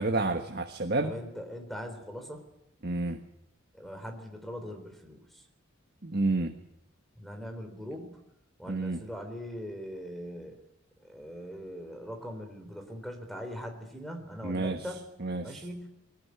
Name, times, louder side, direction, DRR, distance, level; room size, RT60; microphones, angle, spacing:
voice 1, 0.0-1.1 2.8-3.2 6.0-6.5 8.7-9.0 14.4-14.8 15.2-15.6, right 2 dB, 50° right, 5 dB, 1.5 m, -29 dB
voice 2, 1.0-2.4 3.7-5.4 7.2-8.2 8.6-10.5 11.0-15.0 15.4-15.9, equal, ahead, 5 dB, 3.8 m, -41 dB
21.5 x 19.0 x 9.8 m, 0.82 s
head